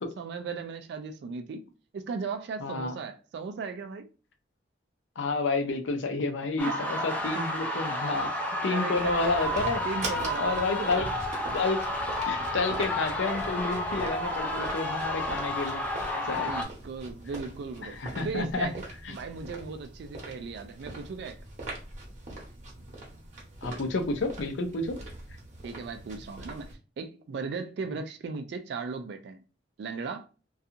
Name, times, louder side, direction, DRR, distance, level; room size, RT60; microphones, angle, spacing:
voice 1, 0.2-1.6 1.9-4.1 6.6-7.1 8.7-9.3 9.8-11.1 16.2-18.8 19.1-21.4 25.6-29.4 29.8-30.3, right 4 dB, 65° right, 0.3 m, -37 dB
voice 2, 2.6-2.9 5.2-8.3 8.6-9.8 10.4-11.1 11.5-15.8 16.1-16.5 17.8-18.7 19.0-19.2 23.6-25.0, left 3 dB, 75° left, 0.5 m, -30 dB
sound 1, 6.6-16.6, left 1 dB, 10° left, 0.5 m, -31 dB
sound 2, 8.9-26.8, right 2 dB, 40° right, 0.9 m, -42 dB
2.7 x 2.3 x 2.4 m
head